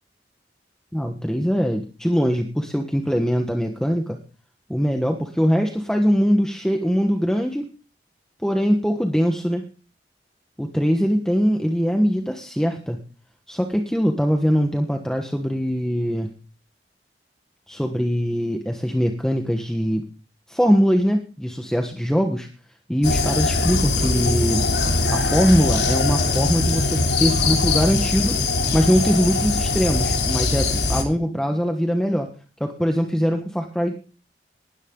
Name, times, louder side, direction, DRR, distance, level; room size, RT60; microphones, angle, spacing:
voice 1, 0.9-4.2 4.7-7.7 8.4-9.7 10.6-13.0 13.5-16.3 17.7-20.0 20.5-22.5 22.9-24.6 25.1-28.4 28.7-32.3 32.6-34.0, equal, 5° left, 4 dB, 1.3 m, -22 dB
sound 1, 23.0-31.0, left 3 dB, 80° left, 3.3 m, -21 dB
19.0 x 13.0 x 3.9 m, 0.37 s
head